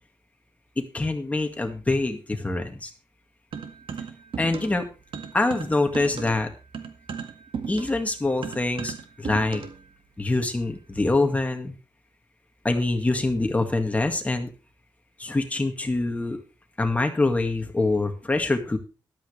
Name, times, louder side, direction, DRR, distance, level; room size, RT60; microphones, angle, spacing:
voice 1, 0.9-2.9 4.4-4.9 5.3-6.5 7.7-9.6 10.2-11.8 12.6-14.5 15.2-16.4 16.8-18.8, left 2 dB, 15° left, 5 dB, 2.0 m, -25 dB
sound 1, 3.5-4.8 5.1-9.9, right 6 dB, 90° right, 1.9 m, -36 dB
13.5 x 12.0 x 3.3 m, 0.32 s
wide cardioid pair, 165°, 9 cm